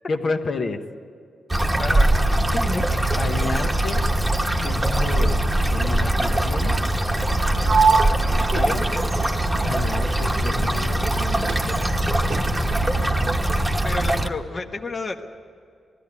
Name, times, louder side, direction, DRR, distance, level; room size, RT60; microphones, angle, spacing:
voice 1, 0.1-0.8 3.2-4.0 4.5-6.8 8.5-8.9 9.5-12.0, left 3 dB, 50° left, 4 dB, 1.1 m, -30 dB
sound 1, 1.5-14.3, right 1 dB, 10° right, 1.2 m, -22 dB
voice 2, 1.8-2.1 2.5-2.8 8.2-8.8 13.8-15.2, left 3 dB, 30° left, 3 dB, 1.1 m, -31 dB
Sliding door, 7.6-11.2 11.5-12.8, right 5 dB, 55° right, 1.1 m, -26 dB
20.5 x 14.5 x 9.6 m, 2.5 s
wide cardioid pair, 140°, 0 cm